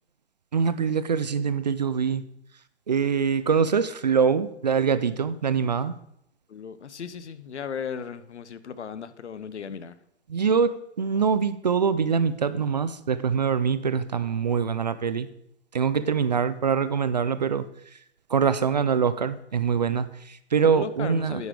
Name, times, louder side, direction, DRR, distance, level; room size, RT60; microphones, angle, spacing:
voice 1, 0.5-2.2 2.9-6.0 10.3-15.3 15.7-17.7 18.3-21.4, right 6 dB, 40° right, 15 dB, 0.4 m, -24 dB
voice 2, 6.5-10.0 20.6-21.5, left 7 dB, 80° left, 14 dB, 0.9 m, -36 dB
9.5 x 6.5 x 5.1 m, 0.75 s
hypercardioid pair, 160°, 34 cm